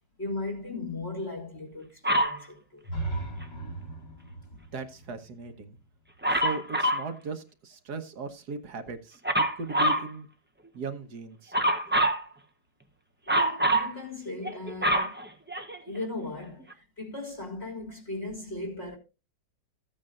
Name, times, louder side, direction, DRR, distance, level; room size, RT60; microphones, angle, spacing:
voice 1, 0.2-2.9 4.5-4.6 13.3-15.2 15.9-19.0, left 2 dB, 40° left, 2.0 m, -37 dB
Dog, 2.0-2.4 6.2-7.1 9.2-10.1 11.5-12.2 13.3-13.9 14.4-16.0 16.7-16.8, right 1 dB, 10° right, 0.6 m, -25 dB
sound 1, 2.8-6.7, right 2 dB, 75° left, 4.4 m, -38 dB
voice 2, 4.7-5.8 6.3-10.3 10.7-11.5, right 4 dB, 65° right, 1.6 m, -38 dB
14.5 x 8.7 x 2.5 m
omnidirectional pair, 1.9 m